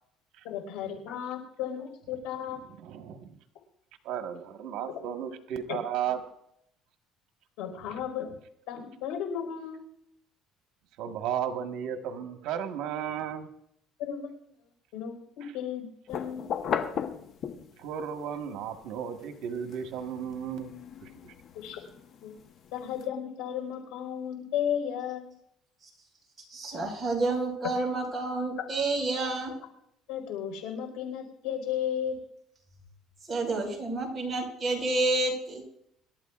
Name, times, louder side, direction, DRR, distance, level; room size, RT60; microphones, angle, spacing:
voice 1, 0.4-2.6 5.7-5.8 7.6-8.3 8.7-9.8 14.0-14.5 14.9-16.5 21.5-21.8 22.2-22.3 22.7-25.3 30.1-32.1, left 9 dB, 85° left, 3 dB, 4.7 m, -34 dB
voice 2, 2.8-3.4 4.0-6.2 11.0-13.5 17.8-20.7 21.0-21.1, right 9 dB, 70° right, 5 dB, 1.5 m, -34 dB
sound 1, 16.1-17.9 18.4-23.0, left 7 dB, 45° left, 1.0 m, -37 dB
voice 3, 26.5-29.6 33.3-35.6, right 2 dB, 15° right, -2 dB, 5.3 m, -29 dB
26.5 x 12.5 x 2.5 m, 0.75 s
cardioid pair, 130°, 0 cm